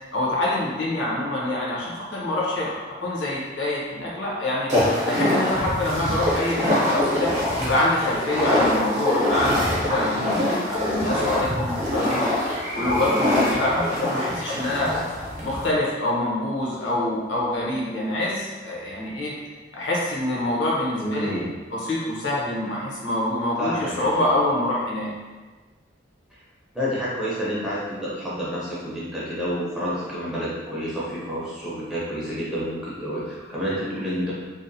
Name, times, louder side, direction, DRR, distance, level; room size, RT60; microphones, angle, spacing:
voice 1, 0.1-7.3 7.6-14.9 15.4-19.3 19.7-21.4 21.7-25.1, left 1 dB, 70° left, -5 dB, 0.7 m, -26 dB
sound 1, 4.7-15.7, left 1 dB, 40° right, 0.7 m, -24 dB
voice 2, 21.0-21.5 23.6-24.3 26.7-34.3, equal, 5° right, -9 dB, 0.6 m, -29 dB
2.7 x 2.1 x 2.6 m, 1.4 s
head